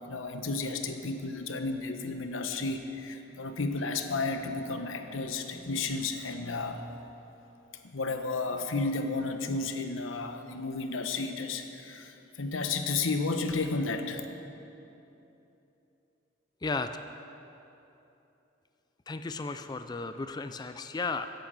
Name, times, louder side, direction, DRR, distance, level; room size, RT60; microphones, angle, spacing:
voice 1, 0.0-6.9 7.9-14.2, left 3 dB, 90° left, 7 dB, 1.0 m, -32 dB
voice 2, 19.1-21.3, left 3 dB, 20° left, 9 dB, 0.4 m, -34 dB
10.5 x 10.5 x 7.6 m, 2.9 s
head